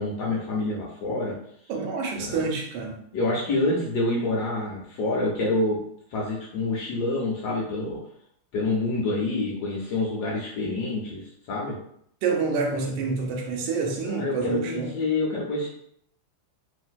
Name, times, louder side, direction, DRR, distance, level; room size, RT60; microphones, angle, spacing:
voice 1, 0.0-1.3 2.2-2.4 3.1-5.8 6.1-8.0 8.5-11.8 14.0-15.7, left 2 dB, 90° left, -4 dB, 0.8 m, -27 dB
voice 2, 1.7-3.0 12.2-14.9, right 4 dB, 80° right, 1 dB, 1.4 m, -27 dB
3.3 x 2.5 x 2.2 m, 0.70 s
omnidirectional pair, 2.4 m